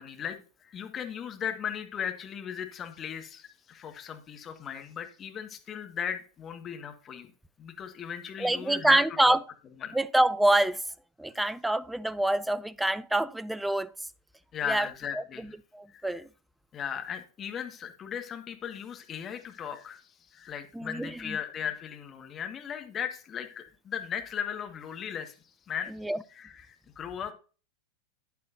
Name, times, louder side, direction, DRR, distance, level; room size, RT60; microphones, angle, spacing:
voice 1, 0.0-7.3 7.6-9.0 9.3-9.4 9.8-10.0 14.5-15.5 15.9-16.2 16.7-25.4 25.7-25.9 26.3-27.3, left 8 dB, 25° left, 1.6 m, -37 dB
voice 2, 8.4-9.4 9.9-10.8 11.2-13.9 14.7-14.9 15.2-15.5 15.7-16.3 20.7-21.4 26.0-26.2, right 1 dB, 5° right, 0.5 m, -26 dB
10.5 x 9.2 x 2.6 m
figure-of-eight pair, 90°, 0 cm